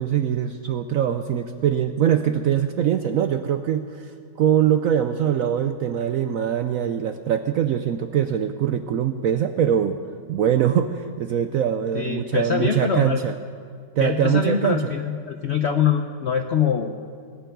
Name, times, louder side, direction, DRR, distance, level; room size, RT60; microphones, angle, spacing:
voice 1, 0.0-4.1 4.4-10.0 10.3-13.3 14.0-14.9, right 9 dB, 70° right, 8 dB, 0.8 m, -22 dB
voice 2, 11.9-13.2 14.0-17.0, left 7 dB, 70° left, 6 dB, 0.6 m, -24 dB
18.0 x 6.8 x 9.3 m, 2.3 s
omnidirectional pair, 1.9 m